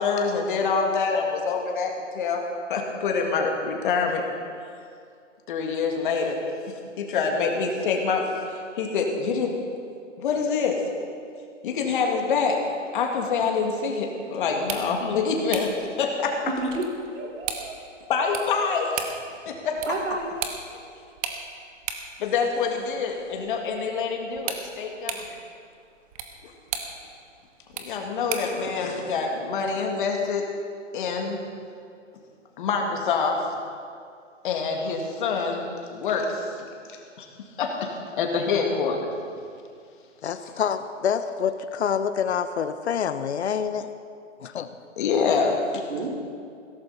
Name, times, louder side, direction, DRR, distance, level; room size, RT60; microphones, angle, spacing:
voice 1, 0.0-2.4 2.7-4.2 5.5-6.4 7.0-9.6 10.2-10.8 11.6-12.6 12.9-16.4 18.1-19.0 19.5-19.8 22.2-25.3 27.8-30.5 30.9-31.4 32.6-33.5 34.4-36.5 37.2-37.3 37.6-39.1 40.4-40.5 45.0-45.8, left 5 dB, 40° left, 2 dB, 2.1 m, -26 dB
sound 1, 14.5-28.6, right 7 dB, 30° right, 1.1 m, -38 dB
voice 2, 16.5-17.7 19.9-20.3 45.9-46.1, right 2 dB, 75° right, -2 dB, 4.1 m, -30 dB
voice 3, 40.2-43.9 44.4-44.7, left 7 dB, 60° left, 11 dB, 1.0 m, -27 dB
16.5 x 14.0 x 4.2 m, 2.3 s
hypercardioid pair, 150°, 38 cm